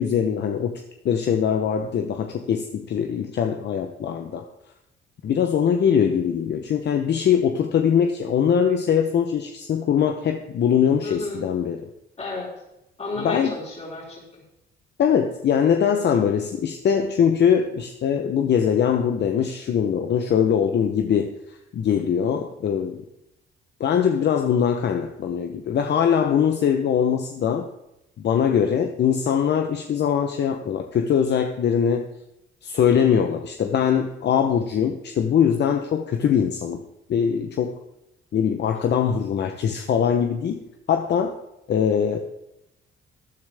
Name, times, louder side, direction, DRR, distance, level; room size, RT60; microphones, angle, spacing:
voice 1, 0.0-4.4 5.2-11.8 13.2-13.5 15.0-23.0 23.8-27.7 28.2-32.1 32.6-36.8 37.1-37.8 38.3-40.6 40.9-41.3 41.7-42.2, left 8 dB, 60° left, 5 dB, 0.9 m, -22 dB
voice 2, 11.0-11.5 12.2-12.5 13.0-14.2 33.0-33.2, left 2 dB, 35° left, -4 dB, 4.4 m, -32 dB
13.5 x 9.8 x 3.5 m, 0.87 s
cardioid pair, 90°, 20 cm